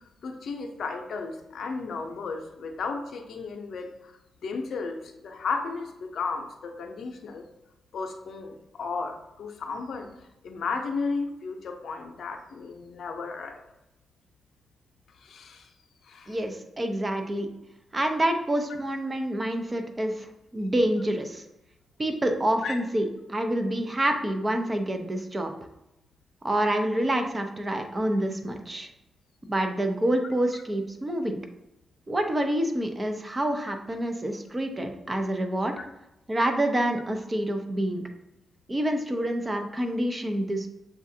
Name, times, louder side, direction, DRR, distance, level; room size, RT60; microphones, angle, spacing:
voice 1, 0.2-4.1 4.4-7.4 7.9-13.6 15.2-15.7 16.0-16.4 22.6-22.8 35.8-35.9, left 4 dB, 70° left, 4 dB, 0.6 m, -34 dB
voice 2, 16.3-17.5 17.9-21.4 22.0-25.5 26.4-28.9 29.5-31.4 32.1-35.7 36.3-38.0 38.7-40.7, right 1 dB, 30° right, 5 dB, 0.6 m, -27 dB
6.9 x 2.4 x 2.7 m, 0.90 s
cardioid pair, 65°, 0 cm